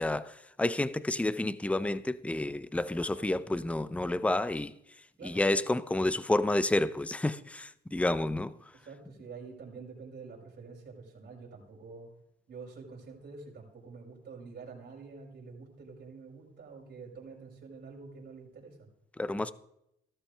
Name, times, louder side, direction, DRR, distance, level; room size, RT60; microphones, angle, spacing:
voice 1, 0.0-4.7 5.2-8.5 19.2-19.5, left 2 dB, 5° left, 0.7 m, -30 dB
voice 2, 5.2-5.6 8.7-12.1 12.5-18.9, right 4 dB, 55° right, 5.6 m, -47 dB
15.5 x 13.0 x 3.5 m
cardioid pair, 90°, 20 cm